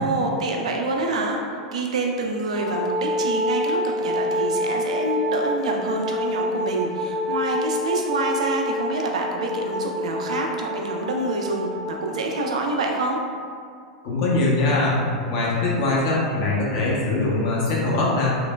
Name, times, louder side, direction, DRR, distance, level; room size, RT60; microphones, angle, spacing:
voice 1, 0.0-1.4 1.7-13.2, right 2 dB, 75° right, 1 dB, 0.4 m, -27 dB
Wind instrument woodwind instrument, 2.5-12.5, left 1 dB, 25° left, 0.5 m, -27 dB
voice 2, 14.0-15.0 15.3-18.3, left 2 dB, 55° left, -5 dB, 0.8 m, -22 dB
3.2 x 2.1 x 2.2 m, 2.2 s
hypercardioid pair, 95°, 4 cm